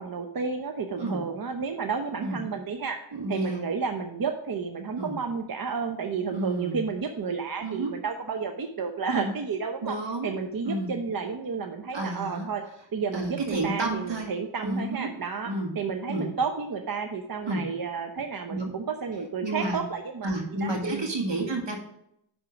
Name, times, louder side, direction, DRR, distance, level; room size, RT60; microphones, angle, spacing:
voice 1, 0.0-3.0 3.3-10.0 10.2-12.6 12.9-20.3 20.6-21.1, right 5 dB, 50° right, 5 dB, 0.8 m, -31 dB
voice 2, 3.1-3.6 5.0-5.2 6.3-6.8 7.6-7.9 9.1-9.3 9.8-10.3 10.6-10.9 11.9-12.5 13.1-14.3 14.6-15.1 15.5-15.7 16.1-16.3 17.5-17.6 18.5-18.7 19.4-19.8 20.2-21.8, right 2 dB, 65° right, 1 dB, 2.1 m, -30 dB
10.5 x 3.6 x 6.0 m, 0.78 s
cardioid pair, 45°, 47 cm